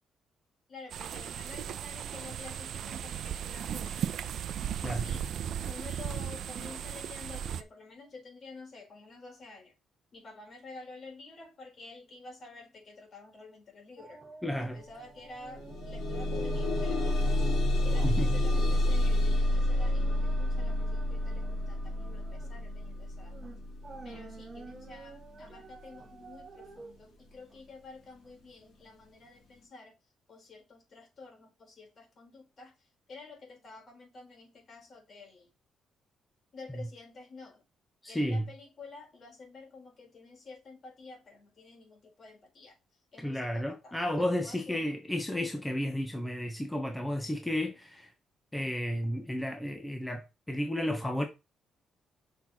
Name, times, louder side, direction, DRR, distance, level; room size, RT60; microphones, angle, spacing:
voice 1, 0.7-4.2 4.8-5.4 5.7-9.8 10.1-14.2 14.6-17.4 17.8-23.4 24.0-30.0 30.3-35.5 36.5-37.7 38.1-42.8 43.1-44.9, left 3 dB, 50° left, 4.2 m, -50 dB
sound 1, 0.9-7.6, right 9 dB, 70° right, 0.6 m, -36 dB
sound 2, 14.0-16.4 16.7-16.9 17.3-28.3 28.6-28.7, right 4 dB, 35° right, 1.2 m, -50 dB
voice 2, 14.4-14.8 18.0-18.3 38.0-38.5 43.2-48.1 48.5-51.2, left 1 dB, 10° left, 1.1 m, -32 dB
sound 3, 14.7-14.8 15.2-26.2 27.0-27.1 27.6-27.7, left 1 dB, 75° left, 3.3 m, -29 dB
6.1 x 4.4 x 4.3 m
cardioid pair, 90°, 0 cm